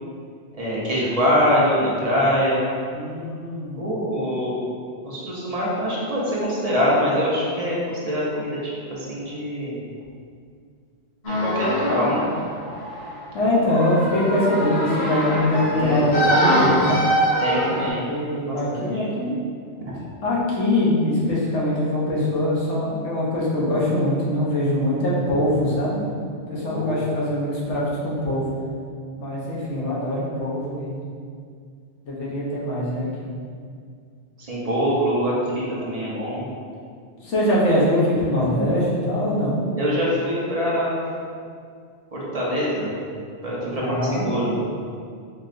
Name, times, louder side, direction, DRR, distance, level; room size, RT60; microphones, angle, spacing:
voice 1, 0.5-2.7 3.8-4.6 5.0-9.8 11.2-12.3 13.4-13.5 15.6-16.1 17.4-18.1 18.4-19.1 26.7-27.0 34.5-36.5 39.8-40.9 42.1-42.9 43.4-44.6, equal, 35° right, -6 dB, 0.8 m, -24 dB
voice 2, 2.9-3.8 13.3-17.0 17.7-19.3 20.2-26.0 26.5-28.4 29.2-31.0 32.0-33.3 37.2-39.5 43.8-44.3, left 1 dB, 80° left, -6 dB, 1.2 m, -23 dB
sound 1, 11.2-17.9, equal, 65° left, 1.3 m, -23 dB
4.5 x 3.1 x 2.5 m, 2.2 s
omnidirectional pair, 1.2 m